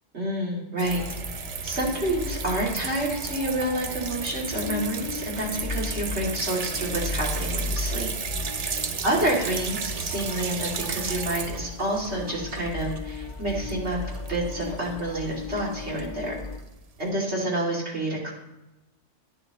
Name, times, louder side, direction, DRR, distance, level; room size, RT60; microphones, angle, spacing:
voice 1, 0.1-1.0 1.6-8.1 9.0-14.0 14.3-16.4 17.0-18.3, right 1 dB, 75° right, -3 dB, 2.9 m, -28 dB
sound 1, 0.8-16.6, left 3 dB, 30° left, 0.6 m, -36 dB
sound 2, 0.8-17.1, right 6 dB, 45° right, 0.5 m, -34 dB
11.0 x 10.5 x 3.0 m, 0.95 s
omnidirectional pair, 1.1 m